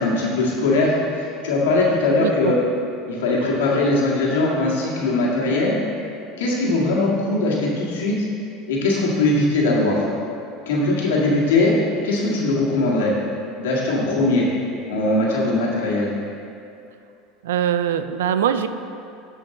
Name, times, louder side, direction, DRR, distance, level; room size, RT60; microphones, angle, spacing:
voice 1, 0.0-2.6 3.1-5.8 6.4-8.3 8.7-10.0 10.6-11.7 12.0-13.1 13.6-14.5 14.9-16.1, left 2 dB, 90° left, -5 dB, 1.8 m, -20 dB
voice 2, 2.2-2.5 17.4-18.7, right 9 dB, 90° right, 10 dB, 0.4 m, -22 dB
12.0 x 5.1 x 3.8 m, 2.6 s
supercardioid pair, 110°, 0 cm